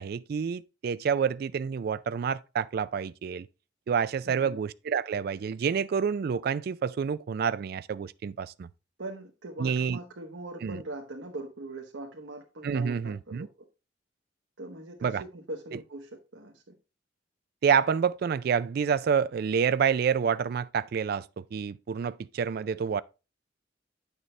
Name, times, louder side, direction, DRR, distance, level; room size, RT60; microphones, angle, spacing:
voice 1, 0.0-3.5 3.9-8.7 9.6-10.0 10.6-10.8 12.6-13.5 15.0-15.2 15.7-15.8 17.6-23.0, right 7 dB, 55° right, 0.3 m, -28 dB
voice 2, 4.2-4.6 9.0-13.5 14.6-16.6, right 2 dB, 90° right, 1.2 m, -41 dB
9.1 x 6.6 x 3.2 m
head